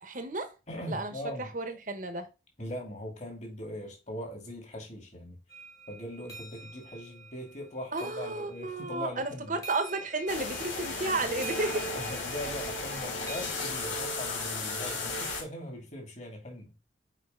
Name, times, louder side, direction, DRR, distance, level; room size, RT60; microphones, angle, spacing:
voice 1, 0.0-0.5 0.9-2.3 7.9-11.8, right 2 dB, 45° right, 1.1 m, -33 dB
voice 2, 0.7-1.5 2.6-5.4 5.9-9.6 11.9-16.7, equal, 40° left, 2.5 m, -40 dB
sound 1, 5.5-13.5, right 2 dB, 15° left, 1.5 m, -47 dB
sound 2, 10.3-15.4, left 2 dB, 80° left, 2.9 m, -34 dB
5.7 x 5.0 x 3.8 m
head